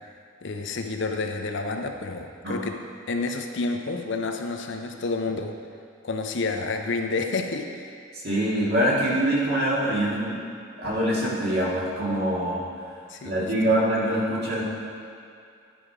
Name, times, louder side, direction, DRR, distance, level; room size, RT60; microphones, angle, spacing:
voice 1, 0.4-2.7 3.1-5.6 6.0-7.9 13.1-13.5, left 3 dB, 60° left, 4 dB, 0.6 m, -29 dB
voice 2, 8.1-10.5 10.8-12.6 13.2-14.6, right 1 dB, 50° right, -6 dB, 2.1 m, -24 dB
11.0 x 5.1 x 4.8 m, 2.4 s
head